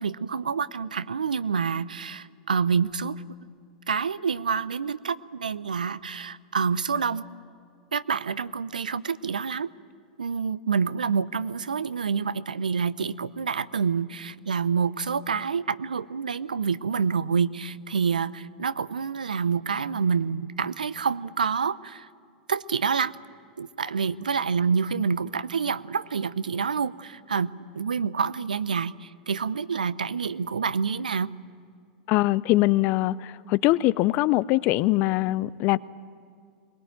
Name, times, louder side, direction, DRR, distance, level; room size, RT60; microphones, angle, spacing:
voice 1, 0.0-3.2 3.9-7.2 7.9-9.7 10.2-22.1 22.5-23.1 23.6-31.3, right 6 dB, 85° right, 0.6 m, -27 dB
voice 2, 32.1-35.8, left 18 dB, 45° left, 0.5 m, -22 dB
22.0 x 20.0 x 9.2 m
hypercardioid pair, 95°, 4 cm